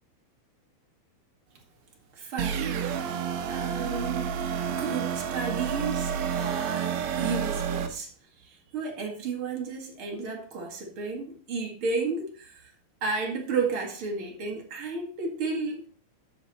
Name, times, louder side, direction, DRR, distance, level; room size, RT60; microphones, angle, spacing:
voice 1, 2.1-4.3 4.7-8.1 8.4-12.7 13.0-15.9, right 4 dB, 45° right, 2.0 m, -33 dB
sound 1, 2.4-7.9, right 7 dB, 70° right, 1.8 m, -29 dB
11.0 x 6.3 x 4.1 m
omnidirectional pair, 4.2 m